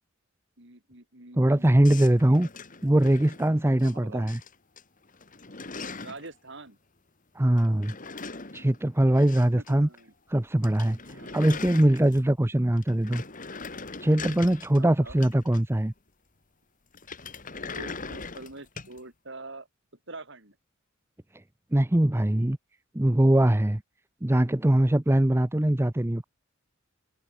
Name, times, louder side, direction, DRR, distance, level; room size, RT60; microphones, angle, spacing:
voice 1, 0.6-1.9 3.8-4.3 6.0-6.8 9.5-10.1 11.1-11.4 14.8-15.2 17.8-19.7 20.1-20.6, right 2 dB, 60° right, 5.3 m, -45 dB
voice 2, 1.4-2.5 2.8-4.4 7.4-7.9 8.5-9.9 10.3-11.0 11.3-13.2 14.0-15.9 21.7-22.6 22.9-23.8 24.2-26.2, right 1 dB, 10° right, 0.6 m, -22 dB
sound 1, 1.8-3.9 4.3-4.8 5.1-6.3 7.6-9.7 10.0-10.1 10.4-10.5 10.6-12.4 12.8-15.9 16.9-19.0, left 4 dB, 40° left, 2.6 m, -41 dB
head